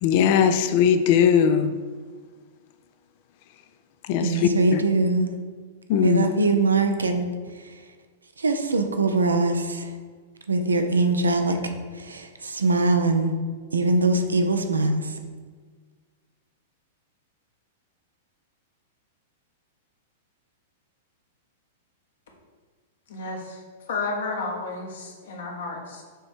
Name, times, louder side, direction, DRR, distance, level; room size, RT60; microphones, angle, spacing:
voice 1, 0.0-1.7 4.1-4.8 5.9-6.3, left 8 dB, 50° left, 9 dB, 0.4 m, -20 dB
voice 2, 4.2-5.3 6.0-7.2 8.4-9.8 10.5-11.6 12.0-13.3 13.7-15.0, right 3 dB, 80° right, 6 dB, 0.6 m, -22 dB
voice 3, 23.1-23.6 23.9-26.0, left 3 dB, 65° left, 1 dB, 1.3 m, -32 dB
6.6 x 3.3 x 4.5 m, 1.5 s
figure-of-eight pair, 100°, 0 cm